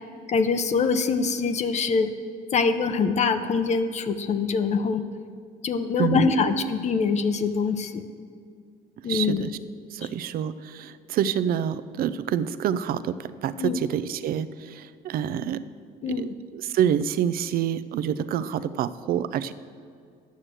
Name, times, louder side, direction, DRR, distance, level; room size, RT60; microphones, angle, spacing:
voice 1, 0.3-2.1 2.5-5.0 5.6-8.0 9.0-9.4 13.6-13.8 16.0-16.3, left 5 dB, 40° left, 9 dB, 0.6 m, -24 dB
voice 2, 6.0-6.5 9.1-9.5 9.9-15.6 16.1-19.5, right 9 dB, 60° right, 15 dB, 0.5 m, -27 dB
9.5 x 6.5 x 7.5 m, 2.2 s
cardioid pair, 110°, 17 cm